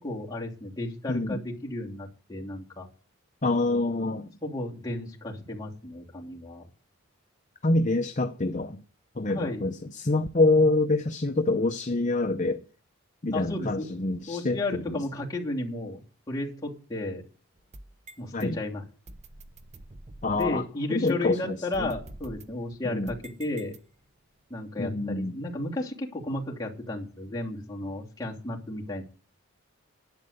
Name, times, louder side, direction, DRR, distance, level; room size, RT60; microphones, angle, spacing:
voice 1, 0.0-2.9 4.4-6.7 9.3-9.6 13.3-13.9 14.3-16.0 16.3-17.2 18.2-18.8 20.3-23.7 24.5-29.0, left 2 dB, 20° left, 2.8 m, -33 dB
voice 2, 1.1-1.4 3.4-4.3 7.6-8.8 9.2-12.6 13.2-15.0 18.3-18.6 20.2-20.6 20.9-21.9 22.8-23.1 24.8-25.3, left 2 dB, 35° left, 0.6 m, -26 dB
sound 1, 17.6-18.4 19.1-20.7 21.1-21.2 21.7-24.2, right 1 dB, 30° right, 0.8 m, -47 dB
11.5 x 8.9 x 6.7 m
head